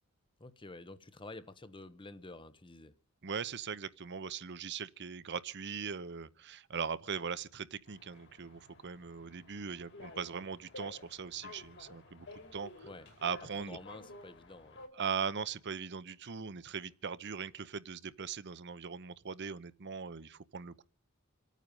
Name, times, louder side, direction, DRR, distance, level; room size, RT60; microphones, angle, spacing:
voice 1, 0.4-3.0 12.8-13.1 13.4-14.9, left 2 dB, 25° left, 0.9 m, -49 dB
voice 2, 3.2-12.7 13.2-13.8 14.9-20.8, right 6 dB, 55° right, 0.8 m, -40 dB
sound 1, 7.8-14.9, left 2 dB, 55° left, 3.3 m, -53 dB
27.5 x 9.3 x 5.3 m
head